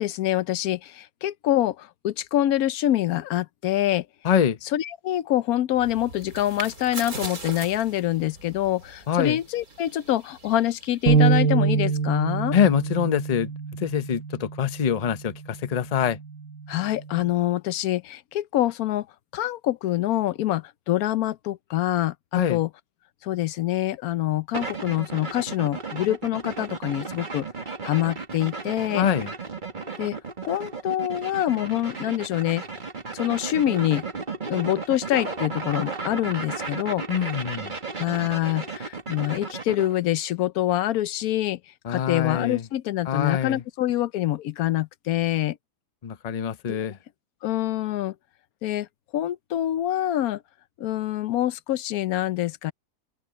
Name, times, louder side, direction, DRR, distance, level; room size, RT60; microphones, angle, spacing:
voice 1, 0.0-4.1 4.7-12.6 16.7-19.1 19.3-22.7 23.2-27.5 27.8-29.1 30.0-30.2 30.4-32.6 33.1-34.0 34.5-37.0 38.0-41.6 41.9-45.6 47.4-48.1 48.6-48.9 49.1-50.4 50.8-52.7, left 13 dB, 90° left, 1.1 m, -25 dB
voice 2, 4.2-4.6 9.1-9.4 12.5-13.5 13.8-16.2 22.3-22.6 28.9-29.3 37.1-37.7 41.8-42.7 43.1-43.6 46.0-47.0, left 8 dB, 35° left, 0.6 m, -24 dB
sound 1, 5.7-11.5, right 3 dB, 90° right, 4.3 m, -40 dB
sound 2, 11.1-17.3, right 5 dB, 65° right, 1.4 m, -26 dB
sound 3, 24.5-39.9, right 4 dB, 35° right, 1.8 m, -34 dB
omnidirectional pair, 1.5 m